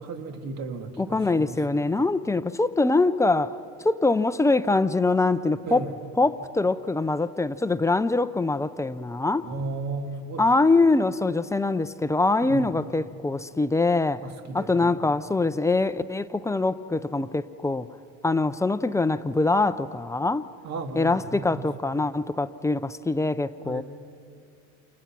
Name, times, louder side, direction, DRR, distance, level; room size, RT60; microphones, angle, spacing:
voice 1, 0.0-1.6 5.6-5.9 9.4-10.5 12.4-12.7 14.2-14.9 20.6-21.6 23.6-23.8, right 3 dB, 55° right, 6 dB, 2.5 m, -34 dB
voice 2, 1.0-5.9 6.2-9.5 10.4-14.2 14.5-17.9 18.2-20.5 20.9-23.8, left 3 dB, 10° left, 12 dB, 0.5 m, -23 dB
29.5 x 29.0 x 6.1 m, 2.4 s
cardioid pair, 125°, 32 cm